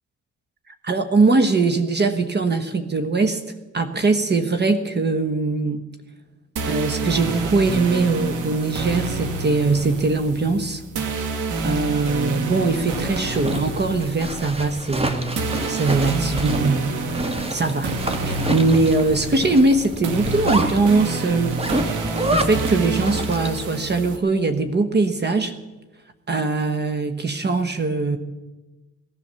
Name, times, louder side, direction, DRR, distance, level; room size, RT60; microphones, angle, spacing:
voice 1, 0.8-3.4 3.7-5.9 6.6-10.8 11.6-15.4 15.7-17.9 18.2-21.6 22.3-25.6 26.3-28.2, right 3 dB, 35° right, 9 dB, 1.2 m, -21 dB
sound 1, 6.6-24.2, right 3 dB, 85° right, 2.0 m, -28 dB
Zipper (clothing), 12.5-23.7, right 1 dB, 20° right, 1.6 m, -29 dB
18.0 x 11.5 x 6.9 m, 1.2 s
cardioid pair, 90°, 30 cm